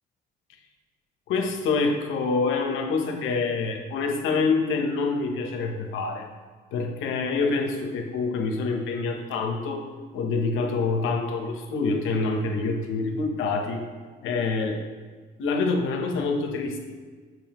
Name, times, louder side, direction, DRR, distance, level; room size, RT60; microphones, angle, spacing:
voice 1, 1.3-6.3 6.7-9.8 10.1-13.8 14.2-14.8 15.4-16.8, left 4 dB, 90° left, 3 dB, 0.9 m, -26 dB
7.1 x 6.1 x 2.9 m, 1.5 s
cardioid pair, 90°, 20 cm